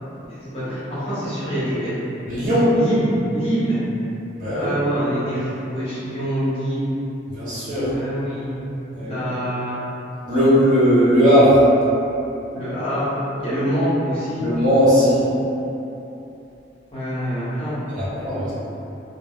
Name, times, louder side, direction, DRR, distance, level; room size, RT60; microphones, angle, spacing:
voice 1, 0.3-2.0 2.7-3.8 4.6-6.9 7.8-8.6 9.0-9.8 12.5-14.5 16.9-17.8, equal, 35° left, -11 dB, 0.8 m, -25 dB
voice 2, 2.3-2.7 4.4-4.8 7.3-7.9 8.9-9.2 10.3-11.6 14.4-15.3 17.9-18.5, equal, 45° right, -12 dB, 1.0 m, -17 dB
2.2 x 2.1 x 3.5 m, 3.0 s
head